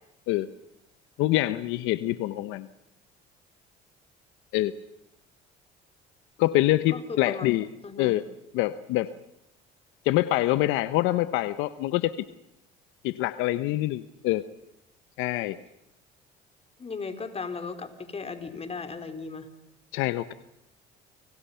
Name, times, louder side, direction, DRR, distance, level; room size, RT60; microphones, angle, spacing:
voice 1, 1.2-2.7 4.5-4.7 6.4-7.7 8.0-8.2 8.5-9.1 10.0-12.1 13.0-14.4 15.2-15.6 19.9-20.3, left 16 dB, 80° left, 13 dB, 1.0 m, -25 dB
voice 2, 6.9-7.5 7.8-8.2 16.8-19.5, left 4 dB, 30° left, 8 dB, 4.1 m, -36 dB
30.0 x 26.0 x 5.8 m, 0.84 s
supercardioid pair, 85°, 20 cm